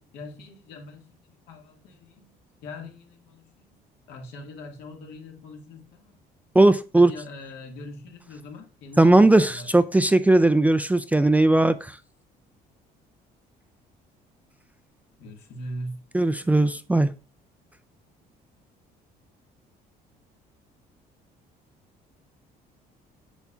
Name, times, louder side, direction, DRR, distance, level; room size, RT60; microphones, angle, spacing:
voice 1, 0.1-2.4 2.6-3.8 4.1-6.2 6.9-9.7 15.2-16.0, left 1 dB, 85° left, 1.8 m, -41 dB
voice 2, 6.6-7.1 9.0-12.0 16.1-17.1, right 2 dB, 10° right, 0.3 m, -18 dB
8.2 x 6.9 x 2.4 m
cardioid pair, 110°, 17 cm